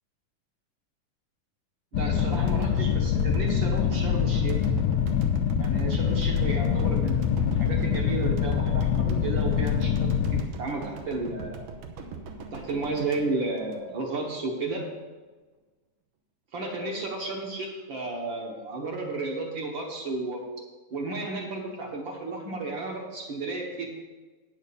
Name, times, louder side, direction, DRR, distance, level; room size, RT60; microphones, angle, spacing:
sound 1, 1.9-10.4, left 8 dB, 80° left, 1.9 m, -25 dB
voice 1, 1.9-4.6 5.6-11.6 12.5-14.9 16.5-20.4 20.9-23.9, right 3 dB, 50° right, 1 dB, 1.5 m, -33 dB
sound 2, 2.2-14.4, right 4 dB, 85° right, 2.5 m, -41 dB
9.2 x 6.5 x 6.9 m, 1.3 s
omnidirectional pair, 3.6 m